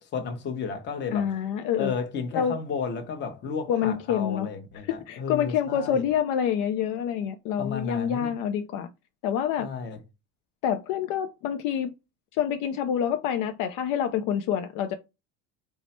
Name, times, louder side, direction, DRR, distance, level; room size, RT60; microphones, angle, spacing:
voice 1, 0.1-1.3 1.8-6.0 7.6-8.3 9.6-10.0, left 5 dB, 30° left, 0.9 m, -33 dB
voice 2, 1.1-1.9 2.3-2.6 3.7-4.5 4.8-8.9 9.2-9.7 10.6-11.9 12.4-14.9, left 9 dB, 65° left, 0.5 m, -27 dB
4.5 x 2.1 x 4.2 m
cardioid pair, 170°, 34 cm